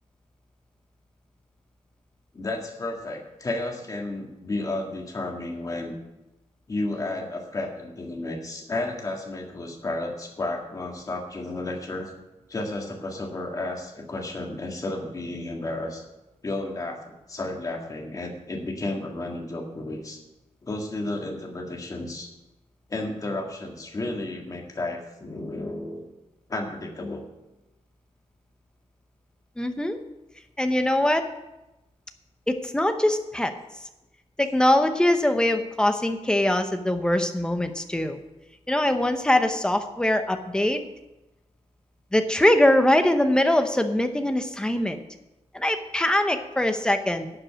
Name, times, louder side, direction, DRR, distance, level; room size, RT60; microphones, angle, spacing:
voice 1, 2.3-5.9 6.7-12.1 12.5-16.0 16.4-20.2 20.6-22.3 22.9-26.0 26.5-27.3, left 2 dB, 30° left, 1 dB, 1.8 m, -32 dB
voice 2, 29.6-30.0 30.6-31.2 32.5-33.5 34.4-38.2 38.7-40.8 42.1-45.0 45.5-47.3, left 1 dB, 5° left, 7 dB, 0.8 m, -22 dB
11.5 x 5.4 x 8.8 m, 0.99 s
wide cardioid pair, 175°, 12 cm